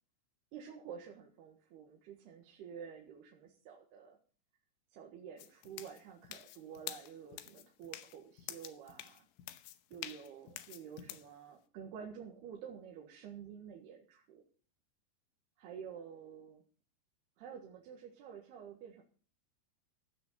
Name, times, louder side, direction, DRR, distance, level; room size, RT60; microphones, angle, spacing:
voice 1, 0.5-4.2 4.9-9.3 9.9-14.4 15.6-16.6 17.4-19.0, right 7 dB, 70° right, 0 dB, 3.5 m, -50 dB
sound 1, 5.4-11.3, left 13 dB, 90° left, 3.2 m, -48 dB
16.0 x 6.2 x 7.8 m, 0.41 s
omnidirectional pair, 5.1 m